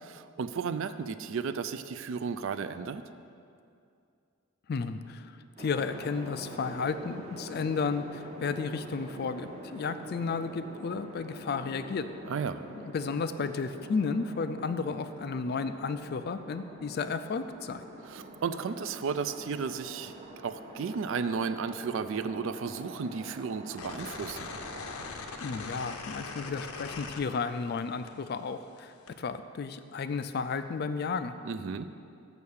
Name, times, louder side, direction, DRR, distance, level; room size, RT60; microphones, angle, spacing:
voice 1, 0.1-3.0 12.3-12.6 18.0-20.1 20.4-24.5 31.4-31.9, right 5 dB, 60° right, 11 dB, 0.3 m, -34 dB
voice 2, 4.7-12.1 12.7-17.9 25.4-31.3, left 5 dB, 45° left, 11 dB, 0.3 m, -33 dB
sound 1, 5.6-25.1, right 1 dB, 30° right, 0.8 m, -46 dB
sound 2, 23.7-27.8 28.1-29.1, left 4 dB, 75° left, 0.7 m, -41 dB
7.1 x 6.7 x 6.4 m, 2.4 s
head